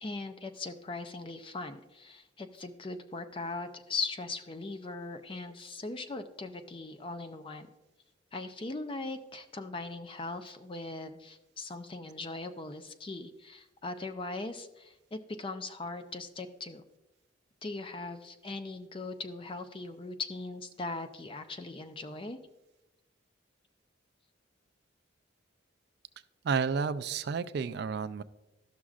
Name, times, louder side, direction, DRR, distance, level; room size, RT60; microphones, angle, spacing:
voice 1, 0.0-7.7 8.3-16.8 17.6-22.4, left 3 dB, 25° left, 8 dB, 0.4 m, -39 dB
voice 2, 26.4-28.2, right 5 dB, 55° right, 12 dB, 0.3 m, -31 dB
12.5 x 6.1 x 2.4 m, 0.99 s
head